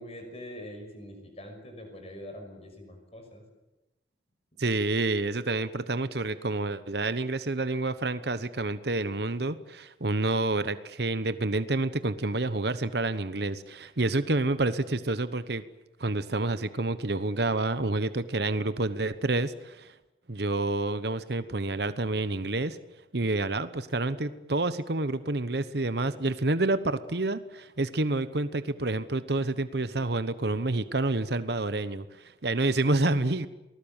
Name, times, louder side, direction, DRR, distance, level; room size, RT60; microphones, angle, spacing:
voice 1, 0.0-3.4 4.5-4.6, left 1 dB, 35° left, 5 dB, 5.9 m, -44 dB
voice 2, 4.6-15.6 16.0-19.9 20.3-22.8 23.1-33.5, right 2 dB, 60° right, 13 dB, 1.0 m, -28 dB
28.0 x 19.5 x 8.9 m, 1.0 s
head